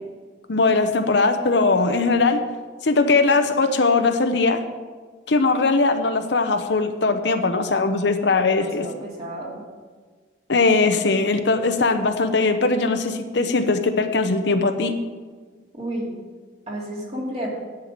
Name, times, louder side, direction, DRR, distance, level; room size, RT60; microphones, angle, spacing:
voice 1, 0.5-2.4 2.8-4.6 5.3-8.9 10.5-14.9, left 3 dB, 65° left, 7 dB, 0.8 m, -20 dB
voice 2, 8.6-9.6 15.7-16.1 16.7-17.5, right 1 dB, 35° right, -3 dB, 2.6 m, -31 dB
10.5 x 5.6 x 8.6 m, 1.4 s
head